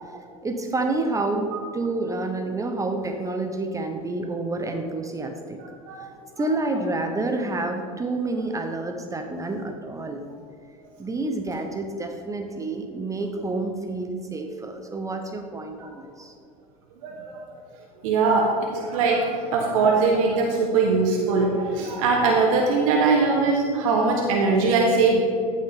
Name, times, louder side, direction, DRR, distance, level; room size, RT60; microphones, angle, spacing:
voice 1, 0.4-5.6 6.0-10.3 11.0-16.3 17.4-17.5 18.6-18.7, right 2 dB, 15° right, 5 dB, 0.9 m, -29 dB
voice 2, 17.0-17.3 18.0-18.5 18.8-25.2, right 4 dB, 65° right, 0 dB, 1.3 m, -21 dB
14.0 x 6.4 x 3.7 m, 2.4 s
hypercardioid pair, 80°, 19 cm